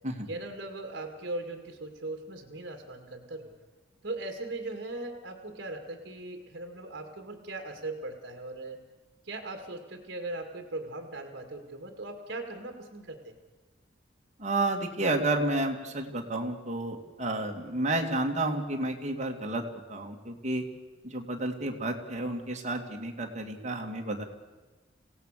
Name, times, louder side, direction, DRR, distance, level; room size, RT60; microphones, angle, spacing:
voice 1, 0.3-3.5 4.0-8.8 9.2-13.3, right 2 dB, 55° right, 4 dB, 2.2 m, -39 dB
voice 2, 14.4-19.6 19.9-20.6 21.0-24.2, right 2 dB, 40° right, 2 dB, 2.3 m, -31 dB
26.5 x 17.0 x 6.7 m, 1.3 s
head